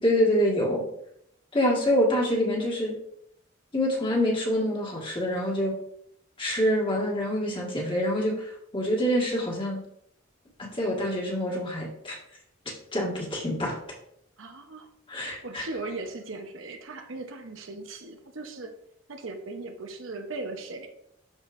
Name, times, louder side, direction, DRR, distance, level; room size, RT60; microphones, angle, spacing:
voice 1, 0.0-0.8 1.5-2.9 3.7-5.8 6.4-9.8 10.6-12.2 12.9-13.7 15.1-15.6, equal, 25° left, -2 dB, 1.7 m, -26 dB
voice 2, 14.4-14.9 15.4-18.7 19.1-20.9, right 3 dB, 80° right, 5 dB, 0.9 m, -38 dB
11.5 x 4.3 x 2.6 m, 0.73 s
head